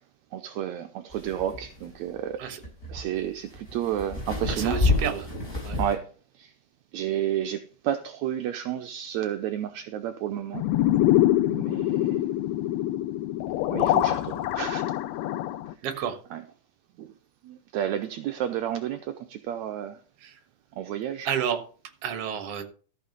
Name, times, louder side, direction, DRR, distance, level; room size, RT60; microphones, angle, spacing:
voice 1, 0.3-2.4 2.9-4.8 5.8-6.0 6.4-6.5 6.9-10.6 11.5-12.3 13.7-14.9 15.9-16.4 17.0-17.1 17.4-20.0 20.8-21.3, right 10 dB, 75° right, 7 dB, 1.8 m, -31 dB
sound 1, 1.1-5.9, left 2 dB, 20° left, 5.2 m, -29 dB
voice 2, 4.5-5.3 5.6-5.8 15.8-16.2 20.2-20.3 21.2-21.6 22.0-22.6, right 8 dB, 55° right, 7 dB, 2.0 m, -30 dB
sound 2, 10.5-15.7, left 14 dB, 80° left, 1.7 m, -25 dB
14.0 x 5.8 x 5.3 m, 0.40 s
omnidirectional pair, 3.8 m